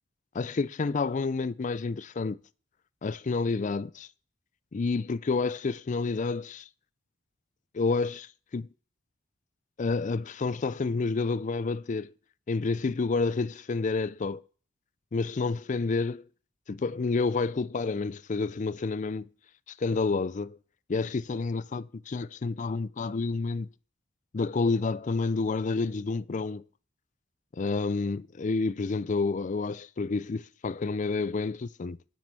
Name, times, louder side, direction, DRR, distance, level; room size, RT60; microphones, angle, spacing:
voice 1, 0.3-2.4 3.0-4.1 4.7-6.7 7.7-8.7 9.8-12.1 12.5-14.4 15.1-16.2 16.7-19.3 19.8-20.6 20.9-23.7 24.3-26.6 27.5-32.0, left 4 dB, 40° left, 0.4 m, -29 dB
9.4 x 7.5 x 6.7 m
head